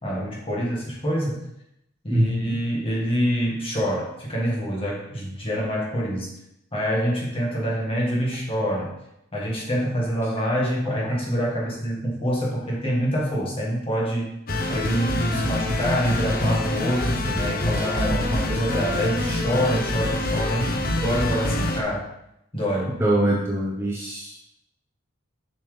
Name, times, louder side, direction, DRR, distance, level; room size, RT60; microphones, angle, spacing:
voice 1, 0.0-1.5 2.0-6.3 6.7-8.9 9.3-14.3 14.7-22.1 22.5-22.9, equal, 25° left, -3 dB, 1.7 m, -26 dB
voice 2, 2.1-2.6 11.0-11.1 23.0-24.4, right 1 dB, 10° right, -4 dB, 1.0 m, -23 dB
sound 1, 14.5-21.8, left 1 dB, 45° left, 0.9 m, -25 dB
7.3 x 6.1 x 3.4 m, 0.81 s
head